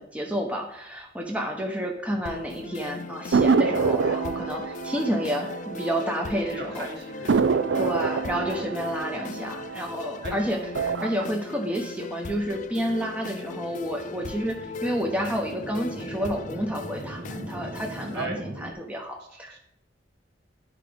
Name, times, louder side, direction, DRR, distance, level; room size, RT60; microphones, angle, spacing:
voice 1, 0.0-6.9 7.8-19.6, equal, 5° right, 0 dB, 1.0 m, -30 dB
sound 1, 2.3-18.3, left 4 dB, 45° left, 0.4 m, -39 dB
sound 2, 3.3-6.4 6.7-6.8 7.3-10.2 10.6-11.2, right 5 dB, 85° right, 0.5 m, -26 dB
voice 2, 6.5-7.9 10.2-10.3 18.1-18.4 19.5-19.6, right 3 dB, 65° right, 1 dB, 2.1 m, -37 dB
sound 3, 7.2-18.7, right 1 dB, 45° right, 1.0 m, -43 dB
9.9 x 5.0 x 5.1 m, 0.78 s
head